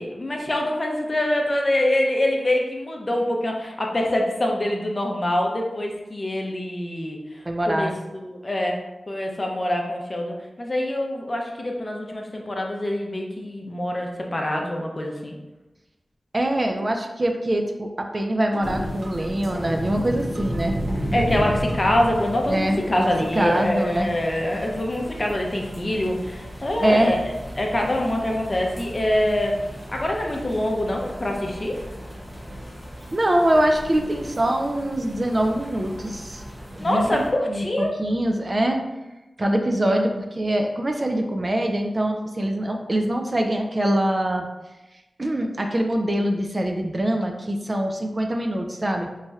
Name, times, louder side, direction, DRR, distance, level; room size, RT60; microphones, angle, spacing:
voice 1, 0.0-8.8 9.1-15.4 21.1-29.6 29.9-31.8 36.8-38.0, left 1 dB, 35° left, 1 dB, 0.5 m, -25 dB
voice 2, 7.5-7.9 16.3-20.8 22.5-24.1 26.8-27.1 33.1-36.4 36.8-38.8 39.4-44.5 45.2-49.1, right 1 dB, 35° right, 4 dB, 0.3 m, -24 dB
sound 1, 18.5-19.3 19.5-20.6 20.9-21.9 22.2-23.3 23.5-23.6, equal, 85° right, 0.6 m, -40 dB
sound 2, 18.6-37.3, equal, 15° right, 1.1 m, -34 dB
3.1 x 2.8 x 2.3 m, 1.0 s
wide cardioid pair, 60°, 0 cm